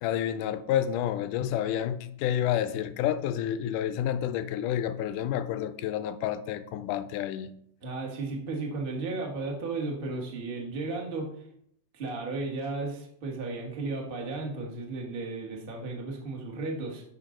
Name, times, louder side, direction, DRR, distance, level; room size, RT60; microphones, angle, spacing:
voice 1, 0.0-7.5, left 10 dB, 80° left, 1.9 m, -29 dB
voice 2, 7.8-11.3 11.9-17.0, right 3 dB, 80° right, 0.5 m, -34 dB
13.0 x 5.2 x 3.8 m
omnidirectional pair, 3.9 m